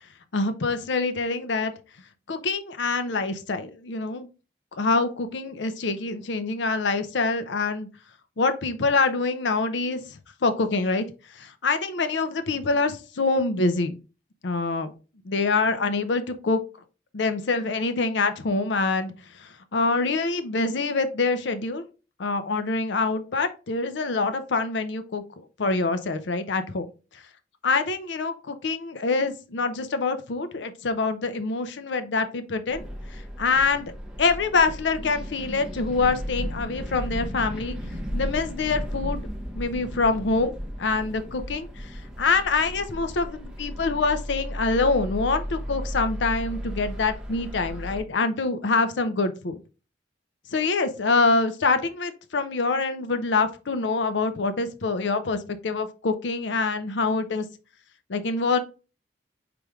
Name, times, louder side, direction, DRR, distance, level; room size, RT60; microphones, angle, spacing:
voice 1, 0.3-1.7 2.3-4.3 4.8-7.9 8.4-10.0 10.4-11.0 11.4-14.0 14.4-14.9 15.2-16.6 17.1-19.1 19.4-21.9 22.2-25.2 25.6-26.9 27.6-32.8 33.4-33.9 34.2-37.8 38.1-39.3 39.5-40.5 40.8-41.8 42.2-49.6 50.5-55.4 55.6-57.5 58.1-58.6, left 3 dB, 85° left, 9 dB, 0.6 m, -25 dB
sound 1, 32.7-48.0, equal, 5° right, 1.2 m, -34 dB
4.8 x 3.4 x 3.0 m, 0.33 s
head